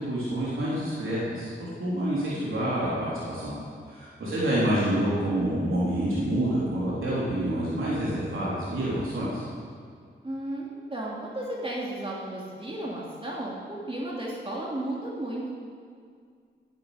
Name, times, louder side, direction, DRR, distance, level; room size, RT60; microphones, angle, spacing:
voice 1, 0.0-3.5 3.9-9.4, right 1 dB, 75° right, -8 dB, 3.7 m, -27 dB
voice 2, 4.2-4.7 10.2-15.5, right 1 dB, 25° right, -5 dB, 3.0 m, -34 dB
16.5 x 10.5 x 5.2 m, 2.2 s
cardioid pair, 55°, 21 cm